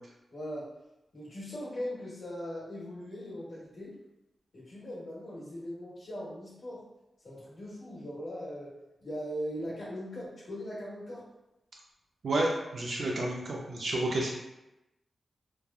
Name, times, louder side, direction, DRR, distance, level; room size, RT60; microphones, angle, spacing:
voice 1, 0.3-0.7 1.1-3.9 4.5-6.9 7.2-11.2, equal, 70° left, -9 dB, 1.1 m, -40 dB
voice 2, 12.2-14.3, right 1 dB, 60° right, -2 dB, 0.4 m, -30 dB
3.2 x 2.3 x 2.3 m, 0.94 s
wide cardioid pair, 140°, 0 cm